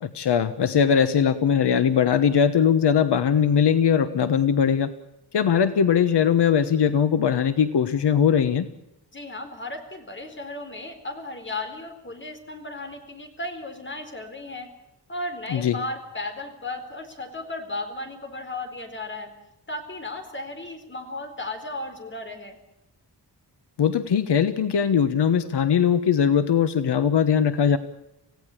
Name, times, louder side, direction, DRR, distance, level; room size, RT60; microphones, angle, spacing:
voice 1, 0.0-4.9 5.3-8.7 15.5-15.7 23.8-27.8, left 7 dB, 75° left, 10 dB, 1.3 m, -20 dB
voice 2, 9.1-14.7 15.1-19.3 19.7-22.6, left 2 dB, 30° left, 6 dB, 4.2 m, -35 dB
27.0 x 17.0 x 8.5 m, 0.87 s
wide cardioid pair, 160°, 40 cm